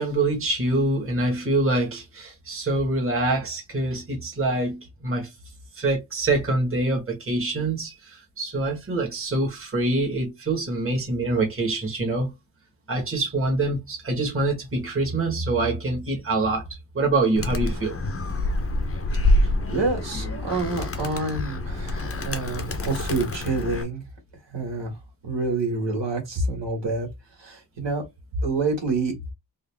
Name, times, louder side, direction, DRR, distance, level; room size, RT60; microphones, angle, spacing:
voice 1, 0.0-5.3 5.7-12.3 12.9-16.7 16.9-18.0 20.1-20.4, right 2 dB, 30° right, 1.5 m, -25 dB
Animal, 17.4-23.8, left 1 dB, 30° left, 0.7 m, -26 dB
voice 2, 19.7-24.0 24.5-24.9 25.2-27.1 27.4-28.0 28.4-29.1, right 3 dB, 80° right, 2.0 m, -27 dB
3.8 x 2.6 x 3.4 m
wide cardioid pair, 135°, 43 cm